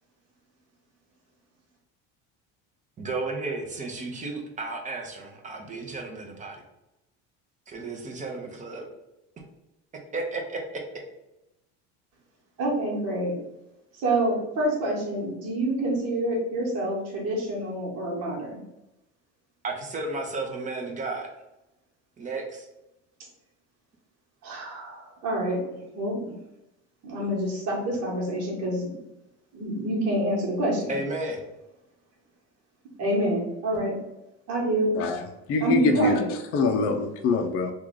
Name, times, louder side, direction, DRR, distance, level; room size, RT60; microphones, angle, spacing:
voice 1, 3.0-6.6 7.7-8.8 10.1-10.6 19.6-21.3 22.2-22.7 30.9-31.4, right 3 dB, 25° right, 1 dB, 0.7 m, -33 dB
voice 2, 12.6-13.4 14.0-18.6 24.4-26.3 27.0-28.9 29.5-30.9 33.0-34.0 34.5-34.9 35.6-36.3, right 1 dB, 55° right, -3 dB, 1.3 m, -27 dB
voice 3, 35.5-36.2 36.5-37.7, left 3 dB, 45° left, 5 dB, 0.5 m, -24 dB
3.0 x 2.4 x 3.7 m, 0.90 s
cardioid pair, 125°, 31 cm